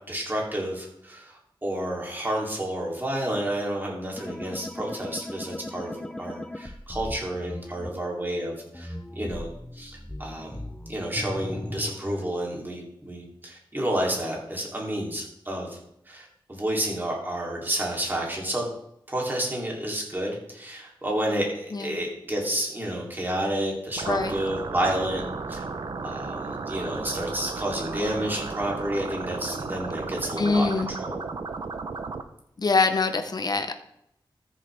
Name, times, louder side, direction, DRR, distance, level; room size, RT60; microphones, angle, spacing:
voice 1, 0.1-15.8 16.1-18.7 19.1-25.2 25.5-25.6 26.0-31.2, right 1 dB, 20° right, -2 dB, 3.1 m, -30 dB
sound 1, 4.2-7.9 8.7-12.3, left 1 dB, 10° left, 0.6 m, -37 dB
sound 2, 24.0-32.2, right 4 dB, 60° right, 0.8 m, -34 dB
voice 2, 30.4-30.9 32.6-33.8, left 3 dB, 50° left, 8 dB, 0.8 m, -24 dB
13.5 x 7.3 x 3.5 m, 0.74 s
wide cardioid pair, 105°, 9 cm